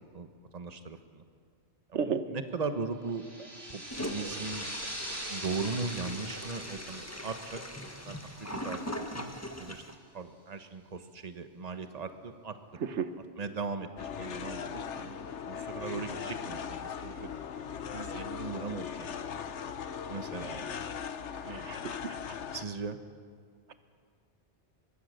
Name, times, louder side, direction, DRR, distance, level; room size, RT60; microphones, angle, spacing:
voice 1, 0.1-1.2 1.9-3.4 3.7-4.7 5.1-7.6 8.0-9.8 10.1-12.6 12.9-13.0 13.4-17.3 17.9-19.1 20.1-20.8 21.4-21.8 22.5-23.0, right 4 dB, 35° right, 8 dB, 1.2 m, -39 dB
voice 2, 1.9-2.2 12.8-13.1 21.5-22.2, right 6 dB, 85° right, 10 dB, 1.3 m, -33 dB
sound 1, 3.0-9.4, right 1 dB, 20° right, 5.2 m, -43 dB
Toilet flush, 3.9-9.9, left 1 dB, 15° left, 1.3 m, -40 dB
sound 2, 14.0-22.7, left 7 dB, 90° left, 1.2 m, -39 dB
24.0 x 21.5 x 6.6 m, 2.1 s
omnidirectional pair, 1.1 m